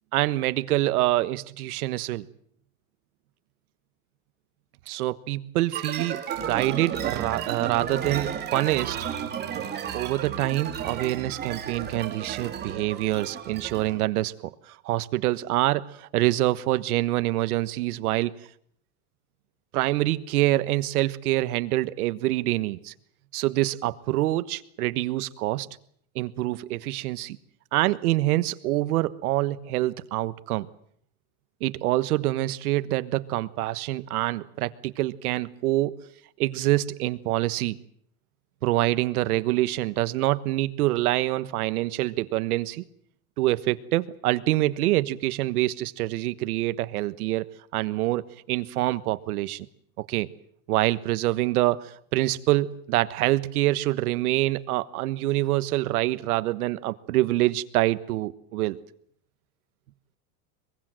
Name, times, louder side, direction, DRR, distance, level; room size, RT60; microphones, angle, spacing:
voice 1, 0.1-2.3 4.9-9.0 9.9-18.3 19.7-22.9 23.3-25.7 26.1-27.4 27.7-30.7 31.6-36.0 36.4-37.8 38.6-42.8 43.4-47.5 47.7-49.7 50.1-50.3 50.7-58.8, right 16 dB, 85° right, 14 dB, 1.4 m, -26 dB
sound 1, 5.7-14.0, right 8 dB, 25° right, 2.9 m, -33 dB
23.0 x 22.5 x 7.7 m, 0.65 s
supercardioid pair, 155°, 43 cm